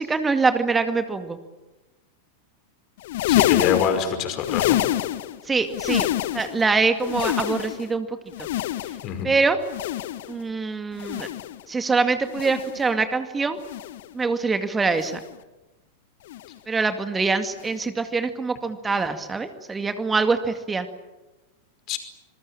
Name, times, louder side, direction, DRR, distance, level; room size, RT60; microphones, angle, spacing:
voice 1, 0.0-1.4 5.5-6.1 6.3-8.1 8.4-8.5 9.2-9.6 10.3-11.3 11.7-13.6 14.1-15.2 16.7-20.9, right 4 dB, 15° right, 8 dB, 2.1 m, -24 dB
sound 1, 3.0-5.4 5.7-6.6 7.0-7.9 8.3-9.2 9.6-10.4 10.9-11.6 12.3-12.8 13.6-14.1 14.9-15.4 16.3-16.6 17.6-17.8 18.9-19.0, left 14 dB, 55° left, 1.3 m, -27 dB
voice 2, 3.3-4.8 9.0-9.3 21.9-22.0, left 8 dB, 40° left, 8 dB, 5.2 m, -24 dB
27.0 x 22.0 x 8.9 m, 1.1 s
figure-of-eight pair, 90°, 0 cm